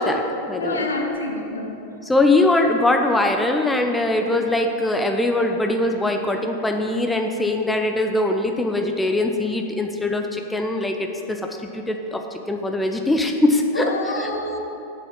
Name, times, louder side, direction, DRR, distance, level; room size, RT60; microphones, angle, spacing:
voice 1, 0.0-0.9 2.0-11.4 11.7-14.3, left 2 dB, 10° left, 4 dB, 0.5 m, -22 dB
voice 2, 0.6-1.8 13.7-14.6, left 2 dB, 75° left, 2 dB, 0.9 m, -27 dB
7.5 x 6.3 x 4.5 m, 2.8 s
figure-of-eight pair, 90°, 0 cm